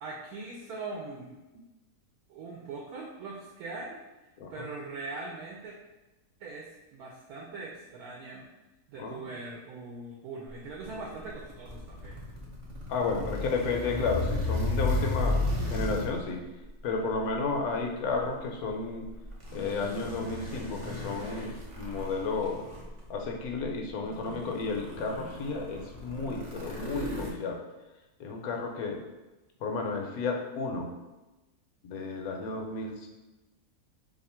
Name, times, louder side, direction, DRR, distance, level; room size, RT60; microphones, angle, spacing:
voice 1, 0.0-1.6 2.3-4.0 4.5-5.7 6.4-8.4 8.9-12.2, right 3 dB, 75° right, -2 dB, 1.0 m, -41 dB
voice 2, 9.0-9.3 12.9-15.4 15.7-16.4 16.8-19.1 19.5-22.6 23.1-27.6 28.2-29.0 29.6-30.9 31.8-33.1, left 4 dB, 75° left, 2 dB, 1.0 m, -32 dB
sound 1, 10.7-16.3 17.1-17.4 19.2-23.0 23.6-23.7 24.1-27.3, left 2 dB, 50° right, 0.4 m, -34 dB
2.8 x 2.4 x 4.2 m, 1.1 s
omnidirectional pair, 1.6 m